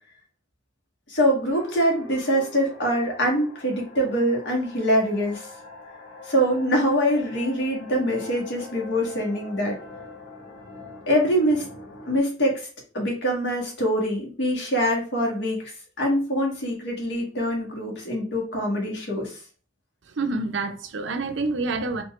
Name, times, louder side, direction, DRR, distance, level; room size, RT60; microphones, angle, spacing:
voice 1, 1.1-5.5 6.3-9.8 11.1-11.7 12.1-12.7 12.9-19.4, equal, 70° left, 1.7 m, -24 dB
sound 1, 1.5-12.2, left 3 dB, 85° left, 1.2 m, -43 dB
voice 2, 20.1-22.0, right 3 dB, 80° right, 0.7 m, -27 dB
4.5 x 2.9 x 3.2 m
head